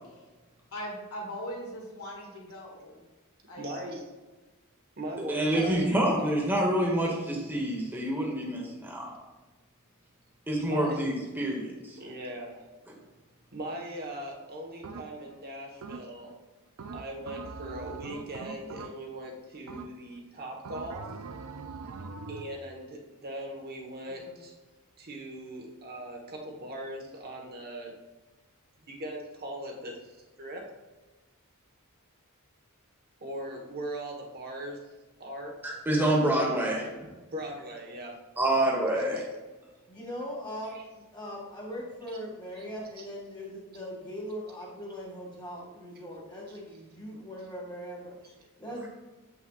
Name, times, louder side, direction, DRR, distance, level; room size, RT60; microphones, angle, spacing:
voice 1, 0.7-3.0 3.5-4.0 24.0-24.4, equal, 75° left, -2 dB, 2.1 m, -40 dB
voice 2, 3.6-4.1 5.0-5.8 10.7-11.0 12.0-12.7 13.5-16.3 16.9-21.2 22.3-24.6 25.0-28.0 28.9-30.7 33.2-35.6 37.3-38.3 39.1-39.3 40.6-40.8 42.1-42.2 42.6-42.7 43.0-43.1 48.2-48.3, right 1 dB, 45° right, 1 dB, 1.2 m, -40 dB
voice 3, 5.3-9.1 10.5-12.0 35.6-36.9 38.4-39.2, right 1 dB, 10° right, -3 dB, 1.1 m, -27 dB
sound 1, 14.8-15.4 15.8-16.3 16.8-19.3 19.7-20.2 20.6-22.6, right 4 dB, 75° right, 0.5 m, -42 dB
voice 4, 39.9-48.9, equal, 20° left, -4 dB, 1.5 m, -40 dB
7.6 x 5.8 x 2.4 m, 1.2 s
head